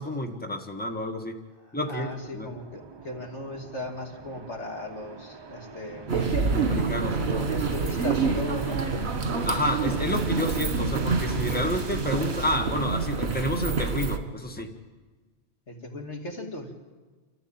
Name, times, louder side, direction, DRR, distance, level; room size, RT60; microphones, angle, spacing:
voice 1, 0.0-1.4 1.7-2.5 6.6-7.6 9.4-14.7, left 1 dB, 10° left, 4 dB, 1.5 m, -30 dB
voice 2, 1.9-6.2 7.2-8.8 15.7-16.7, left 2 dB, 90° left, 2 dB, 2.8 m, -37 dB
sound 1, 1.9-12.6, right 4 dB, 30° right, 0.6 m, -44 dB
sound 2, 6.1-14.2, right 4 dB, 70° right, 1.7 m, -27 dB
28.5 x 13.5 x 8.8 m, 1.4 s
omnidirectional pair, 1.1 m